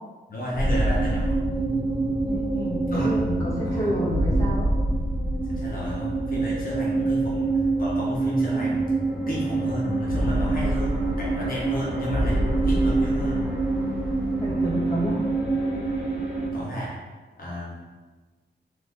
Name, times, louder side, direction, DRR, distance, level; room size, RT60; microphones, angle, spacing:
voice 1, 0.3-1.4 2.9-3.2 3.6-3.9 5.4-8.9 9.3-13.5 16.5-17.0 17.4-17.8, equal, 55° left, -6 dB, 1.0 m, -32 dB
sound 1, 0.5-16.5, right 2 dB, 10° right, 1.4 m, -25 dB
voice 2, 2.3-4.7 14.4-15.3, right 1 dB, 15° left, -7 dB, 1.3 m, -29 dB
4.3 x 2.7 x 4.2 m, 1.3 s
wide cardioid pair, 115°, 18 cm